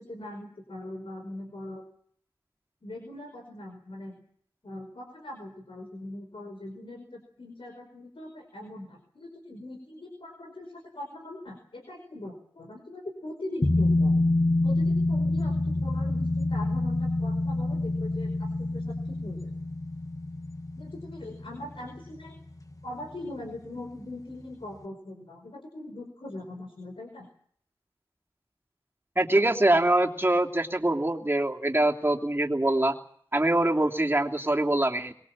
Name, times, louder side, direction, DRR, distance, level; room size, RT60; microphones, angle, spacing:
voice 1, 0.0-1.8 2.8-4.2 4.6-14.1 14.6-19.5 20.8-22.4 22.8-27.3, left 1 dB, 75° left, 4 dB, 5.1 m, -41 dB
sound 1, 13.6-22.7 23.0-23.1, left 2 dB, 35° left, 1.5 m, -27 dB
voice 2, 29.2-32.9 33.3-35.1, right 1 dB, 25° right, 1 dB, 3.0 m, -24 dB
23.5 x 22.0 x 7.4 m, 0.64 s
wide cardioid pair, 60°, 9 cm